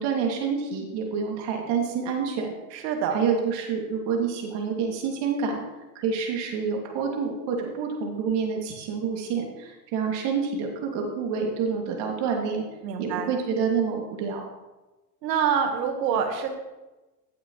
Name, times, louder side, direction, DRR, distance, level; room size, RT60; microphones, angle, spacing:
voice 1, 0.0-2.5 3.1-5.6 5.9-12.6 13.0-14.5, right 6 dB, 55° right, 1 dB, 2.8 m, -28 dB
voice 2, 2.7-3.2 12.8-13.3 15.2-16.5, right 7 dB, 80° right, 5 dB, 1.7 m, -26 dB
15.5 x 7.3 x 3.3 m, 1.1 s
hypercardioid pair, 95°, 49 cm